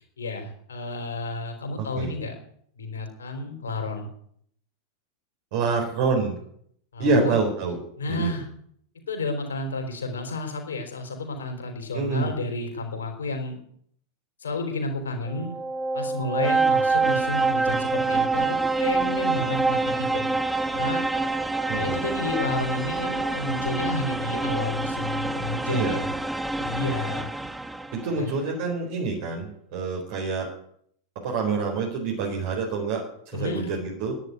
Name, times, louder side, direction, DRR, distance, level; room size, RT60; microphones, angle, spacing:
voice 1, 0.2-2.3 2.8-4.1 6.9-7.3 8.0-8.5 9.1-13.6 14.4-15.5 15.9-20.2 20.7-21.0 21.7-26.1 26.6-27.3 28.2-28.4 33.3-33.7, left 2 dB, 70° left, 4 dB, 4.5 m, -31 dB
voice 2, 1.8-2.1 5.5-6.4 7.0-7.8 8.1-8.4 11.9-12.3 21.7-22.0 25.7-26.0 27.9-30.5 31.2-34.2, right 4 dB, 50° right, 1 dB, 4.2 m, -27 dB
sound 1, 15.3-28.1, right 3 dB, 5° right, 0.8 m, -26 dB
11.5 x 11.0 x 9.6 m, 0.66 s
figure-of-eight pair, 90°, 0 cm